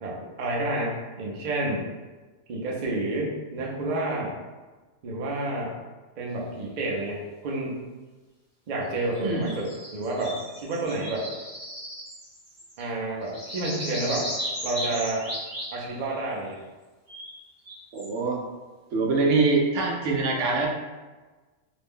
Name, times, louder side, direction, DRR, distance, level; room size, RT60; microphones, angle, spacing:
voice 1, 0.0-1.9 2.5-4.4 5.0-5.8 6.2-7.8 8.7-11.3 12.8-14.3 14.6-15.3 15.7-16.6, right 2 dB, 50° right, -3 dB, 0.6 m, -29 dB
sound 1, 8.9-12.9 13.2-16.2 17.1-18.1, equal, 20° right, 0.9 m, -36 dB
voice 2, 9.2-9.6 17.9-18.4 18.9-20.7, right 3 dB, 75° right, 0 dB, 0.9 m, -24 dB
2.5 x 2.1 x 3.5 m, 1.3 s
omnidirectional pair, 1.3 m